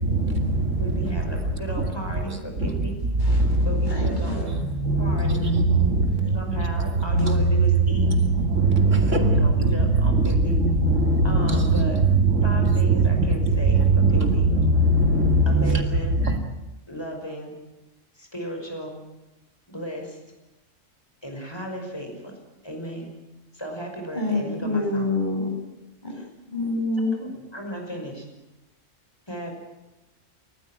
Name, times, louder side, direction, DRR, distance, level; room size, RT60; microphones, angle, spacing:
voice 1, 0.8-3.0 3.6-4.6 5.0-5.4 6.3-8.1 9.2-10.6 11.2-12.0 12.4-14.5 15.5-16.2 16.9-17.6 18.1-19.0 19.7-20.2 21.2-22.4 22.6-23.1 23.5-25.1 26.1-26.3 27.1-28.3 29.3-29.5, equal, 20° left, 2 dB, 5.7 m, -35 dB
voice 2, 3.2-3.6 3.9-4.4 6.1-6.3 24.1-25.5 26.0-26.1 26.5-27.1, left 2 dB, 35° left, 1 dB, 6.9 m, -27 dB
voice 3, 4.8-5.6 7.1-7.4 8.7-9.4 10.0-10.2 10.5-11.6 12.3-12.4 12.9-13.0 13.7-15.8, right 1 dB, 75° right, 4 dB, 2.9 m, -20 dB
29.0 x 14.5 x 9.2 m, 0.98 s
omnidirectional pair, 1.3 m